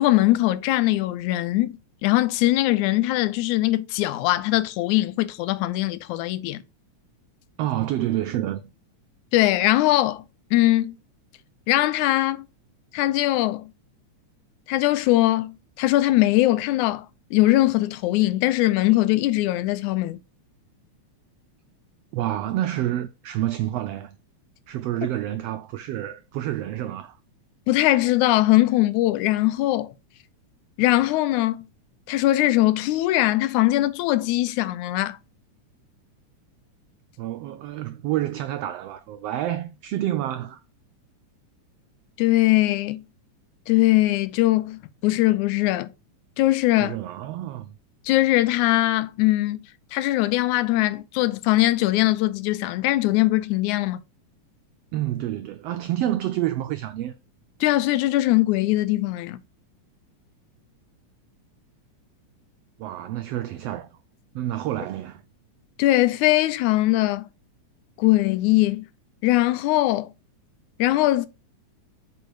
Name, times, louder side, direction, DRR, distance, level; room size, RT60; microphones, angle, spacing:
voice 1, 0.0-6.6 9.3-10.2 10.5-11.0 11.7-12.5 12.9-13.7 14.7-17.1 17.3-20.2 27.7-29.9 30.8-31.7 32.1-35.2 42.2-43.1 43.7-45.9 46.4-47.0 48.1-49.6 49.9-54.0 57.6-59.4 65.8-67.3 68.0-68.9 69.2-70.1 70.8-71.3, left 16 dB, 85° left, 2.0 m, -21 dB
voice 2, 7.6-8.6 22.1-24.2 24.7-27.2 37.2-40.6 46.8-47.7 54.9-57.1 62.8-64.0 64.3-65.2, right 13 dB, 85° right, 1.4 m, -28 dB
7.7 x 4.1 x 4.7 m
omnidirectional pair, 3.4 m